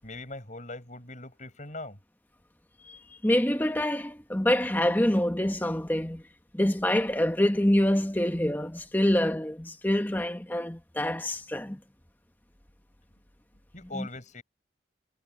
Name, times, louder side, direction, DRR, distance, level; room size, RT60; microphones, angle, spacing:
voice 1, 0.0-2.0 13.7-14.4, left 2 dB, 40° left, 7.9 m, -41 dB
voice 2, 2.8-6.2 6.5-11.8 13.9-14.1, left 1 dB, 10° left, 1.2 m, -26 dB
head